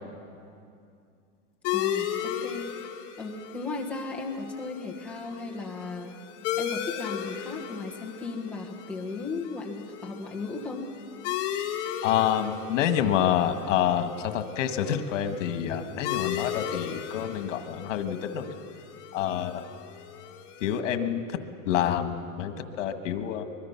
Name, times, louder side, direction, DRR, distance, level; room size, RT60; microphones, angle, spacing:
sound 1, 1.6-20.8, left 10 dB, 30° left, 1.5 m, -36 dB
voice 1, 1.7-2.7 3.2-6.2 6.6-10.9, left 3 dB, 5° left, -3 dB, 1.3 m, -36 dB
voice 2, 12.0-18.5 19.1-19.6 20.6-21.4 21.6-23.4, left 9 dB, 80° left, 8 dB, 1.7 m, -27 dB
24.0 x 21.5 x 5.8 m, 2.5 s
supercardioid pair, 175°, 37 cm